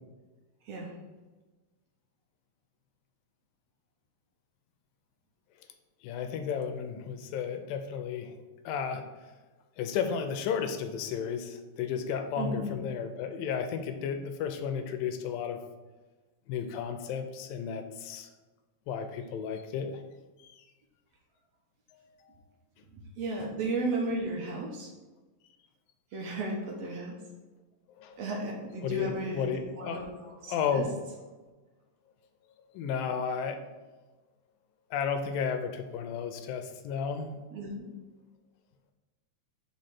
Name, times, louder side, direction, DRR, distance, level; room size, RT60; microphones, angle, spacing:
voice 1, 6.0-9.0 9.8-15.6 16.5-18.3 18.9-20.0 20.4-20.7 21.9-22.4 23.4-23.5 28.0-28.2 28.8-30.0 30.5-30.9 32.7-33.6 34.9-37.3, left 7 dB, 85° left, 7 dB, 2.4 m, -33 dB
voice 2, 12.4-12.7 22.9-24.9 26.1-27.1 28.2-30.0 30.4-30.8 37.5-37.9, right 2 dB, 65° right, -1 dB, 1.8 m, -34 dB
5.3 x 5.1 x 5.9 m, 1.2 s
omnidirectional pair, 4.1 m